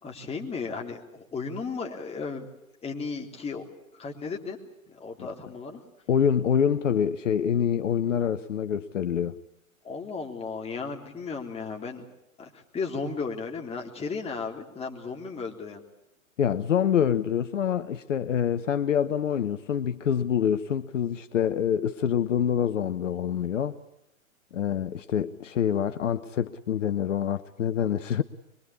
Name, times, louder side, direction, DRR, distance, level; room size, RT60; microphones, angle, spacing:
voice 1, 0.0-2.5 2.8-3.7 4.0-4.6 4.9-5.8 9.8-12.1 12.4-15.8, left 4 dB, 15° left, 3.5 m, -35 dB
voice 2, 6.1-9.4 16.4-23.8 24.5-28.2, left 8 dB, 60° left, 1.1 m, -26 dB
24.0 x 23.5 x 8.6 m
figure-of-eight pair, 110°, 41 cm